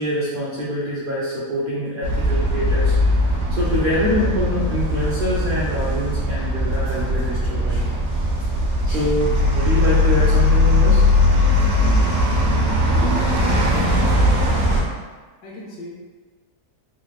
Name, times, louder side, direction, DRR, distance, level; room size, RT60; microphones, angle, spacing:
voice 1, 0.0-2.9 3.2-7.8 8.8-11.0, equal, 80° right, -7 dB, 0.4 m, -25 dB
sound 1, 2.0-14.8, left 1 dB, 60° right, 1.0 m, -19 dB
voice 2, 13.0-14.3 15.4-16.0, left 2 dB, 80° left, -3 dB, 1.4 m, -38 dB
3.4 x 3.2 x 2.4 m, 1.3 s
omnidirectional pair, 1.7 m